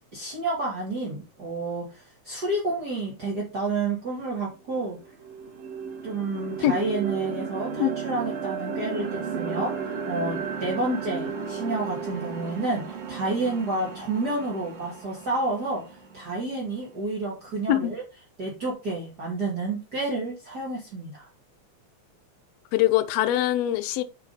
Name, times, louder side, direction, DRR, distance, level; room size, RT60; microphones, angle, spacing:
voice 1, 0.1-5.0 6.0-18.0 18.4-21.3, right 2 dB, 35° right, 2.7 m, -30 dB
sound 1, 4.3-4.4 4.8-16.9, right 6 dB, 60° right, 2.6 m, -34 dB
voice 2, 22.7-24.0, left 13 dB, 70° left, 1.8 m, -22 dB
10.0 x 4.8 x 4.1 m
omnidirectional pair, 3.4 m